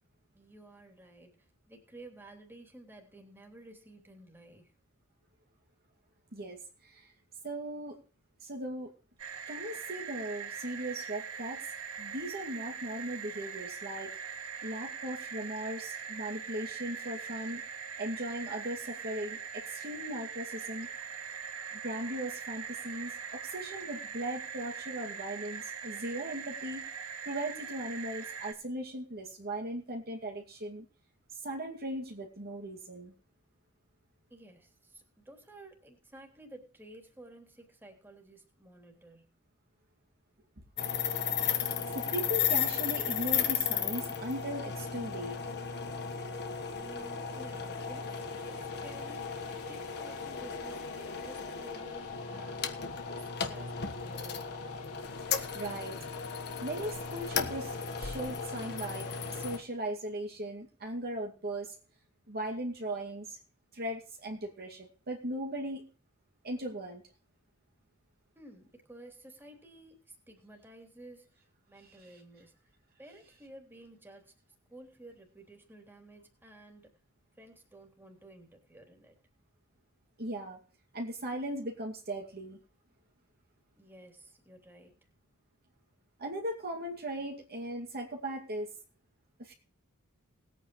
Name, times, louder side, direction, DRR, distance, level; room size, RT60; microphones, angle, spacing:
voice 1, 0.3-4.7 34.3-39.3 46.8-49.4 49.7-52.7 53.1-54.5 68.3-72.5 73.0-74.3 74.7-76.9 77.4-79.1 83.8-84.9, right 1 dB, 10° right, 3 dB, 3.2 m, -53 dB
voice 2, 6.3-7.1 7.4-8.0 8.4-8.9 9.5-11.6 12.0-14.2 14.6-17.6 18.0-20.9 21.8-26.9 27.3-30.9 31.4-33.1 41.9-45.4 55.2-56.0 56.6-61.8 62.3-63.4 63.7-65.9 66.4-67.0 72.0-72.1 80.2-80.6 80.9-82.6 86.2-88.7 89.4-89.5, right 1 dB, 45° right, 1 dB, 2.4 m, -38 dB
sound 1, 9.2-28.5, right 6 dB, 75° right, 2.5 m, -42 dB
sound 2, 40.8-59.6, left 7 dB, 50° left, 1.5 m, -35 dB
sound 3, 41.4-59.6, left 4 dB, 90° left, 1.9 m, -54 dB
20.0 x 9.2 x 3.2 m, 0.36 s
head